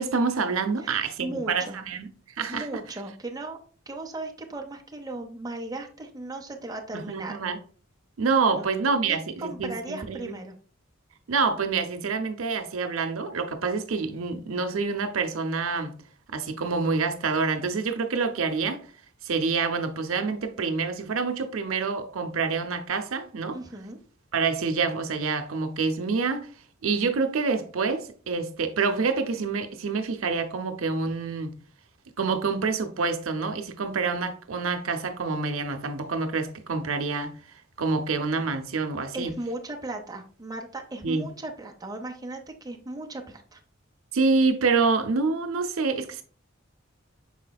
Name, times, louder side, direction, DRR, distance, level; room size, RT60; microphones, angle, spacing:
voice 1, 0.0-2.1 2.4-2.7 6.9-7.6 8.2-10.4 11.3-16.0 16.3-18.8 19.2-23.6 24.3-26.5 26.8-31.6 32.2-37.3 37.8-39.3 41.0-41.3 44.1-46.2, right 4 dB, 85° right, 0.6 m, -27 dB
voice 2, 0.8-1.8 2.5-3.6 3.9-7.4 8.5-8.7 9.1-10.6 23.5-24.0 39.1-43.6, right 2 dB, 20° right, 0.7 m, -37 dB
5.7 x 4.1 x 2.3 m
head